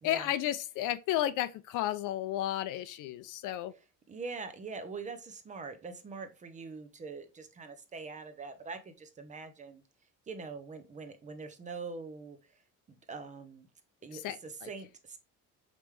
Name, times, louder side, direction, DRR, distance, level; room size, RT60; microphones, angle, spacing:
voice 1, 0.0-3.7 14.1-14.7, left 13 dB, 75° left, 0.5 m, -33 dB
voice 2, 4.1-9.8 10.3-12.6 12.9-13.7 14.0-15.2, right 4 dB, 25° right, 0.5 m, -43 dB
5.1 x 3.3 x 3.1 m
cardioid pair, 165°, 32 cm